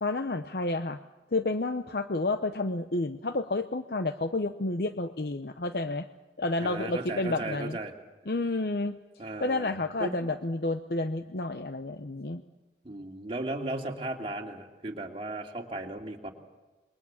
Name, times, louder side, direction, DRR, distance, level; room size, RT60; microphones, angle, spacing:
voice 1, 0.0-1.0 1.3-6.1 6.4-7.8 8.3-12.4, left 2 dB, 60° left, 9 dB, 0.8 m, -30 dB
voice 2, 6.6-7.9 9.2-9.7 10.0-10.2 12.8-16.3, right 2 dB, 30° right, 1 dB, 2.7 m, -36 dB
28.0 x 22.5 x 7.2 m, 1.2 s
head